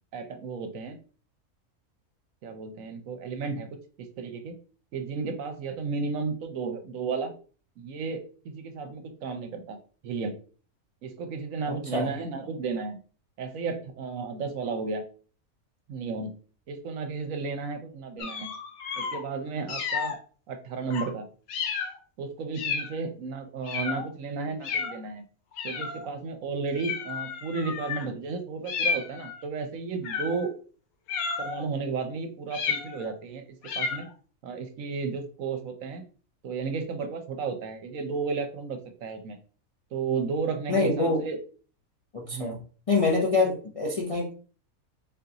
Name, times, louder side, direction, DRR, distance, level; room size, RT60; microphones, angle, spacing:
voice 1, 0.1-1.0 2.4-3.8 4.2-4.5 4.9-7.3 7.8-9.8 10.0-10.4 11.0-13.0 13.4-15.0 15.9-16.3 16.7-18.6 19.0-20.2 20.5-21.3 22.2-25.2 25.6-30.5 31.4-33.4 33.7-34.1 34.4-36.0 36.4-39.4 39.9-41.4 42.3-42.6 43.5-43.6, right 4 dB, 70° right, 6 dB, 1.0 m, -33 dB
voice 2, 11.7-12.1 40.7-41.2 42.1-42.5 42.9-44.4, left 3 dB, 35° left, -2 dB, 0.6 m, -25 dB
sound 1, 18.2-19.2 19.7-20.2 20.9-21.1 21.5-22.0 22.5-23.0 23.6-24.1 24.6-25.0 25.6-26.1 26.7-28.1 28.7-29.4 30.0-30.5 31.1-31.7 32.5-33.1 33.6-34.1, left 5 dB, 75° left, 1.1 m, -32 dB
3.9 x 3.8 x 2.8 m, 0.40 s
omnidirectional pair, 1.5 m